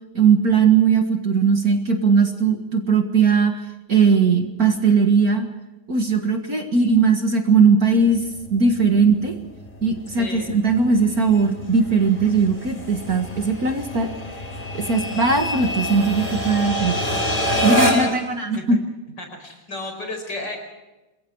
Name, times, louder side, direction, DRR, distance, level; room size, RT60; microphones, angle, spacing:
voice 1, 0.1-3.6 3.9-5.5 5.9-8.2 8.5-9.4 9.8-14.1 14.7-17.0 17.6-18.8, right 5 dB, 45° right, 5 dB, 2.1 m, -19 dB
sound 1, 8.0-18.3, equal, 20° left, 4.7 m, -27 dB
voice 2, 10.2-10.6 17.3-18.1 18.6-18.8 19.2-20.6, left 2 dB, 50° left, 5 dB, 5.7 m, -33 dB
27.5 x 21.5 x 4.7 m, 1.1 s
omnidirectional pair, 2.4 m